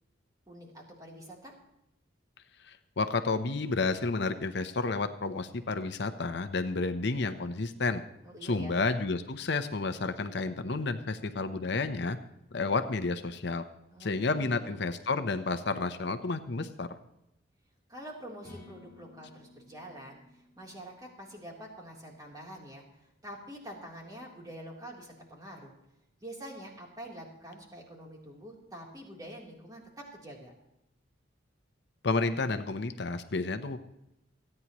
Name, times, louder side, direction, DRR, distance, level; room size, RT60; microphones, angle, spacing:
voice 1, 0.5-1.5 8.2-8.8 13.9-14.7 17.9-25.7 26.2-30.5, right 1 dB, 20° right, -1 dB, 3.3 m, -46 dB
voice 2, 2.6-8.0 8.4-12.2 12.5-13.6 14.0-16.9 32.0-33.8, left 3 dB, 60° left, 9 dB, 0.8 m, -31 dB
sound 1, 18.4-22.2, left 2 dB, 15° left, 3.4 m, -55 dB
29.0 x 9.8 x 3.0 m, 0.86 s
head